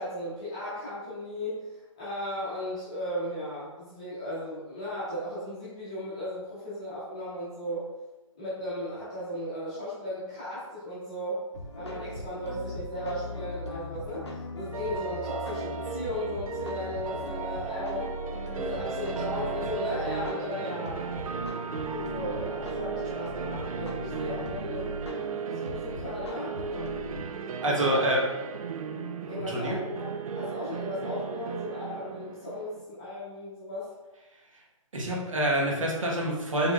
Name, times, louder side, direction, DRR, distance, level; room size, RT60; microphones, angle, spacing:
voice 1, 0.0-1.6 2.0-7.9 8.3-11.4 11.7-18.2 18.5-21.1 21.8-24.9 25.4-26.9 27.6-28.0 29.3-30.0 30.3-33.9, left 1 dB, 10° left, -10 dB, 0.7 m, -36 dB
sound 1, 11.5-27.2, left 1 dB, 50° left, 0.7 m, -39 dB
sound 2, 14.7-32.8, right 5 dB, 85° right, 0.4 m, -36 dB
voice 2, 27.6-28.2 29.5-29.8 34.9-36.7, right 1 dB, 70° right, -2 dB, 1.2 m, -26 dB
4.5 x 3.5 x 2.4 m, 1.1 s
hypercardioid pair, 180°, 17 cm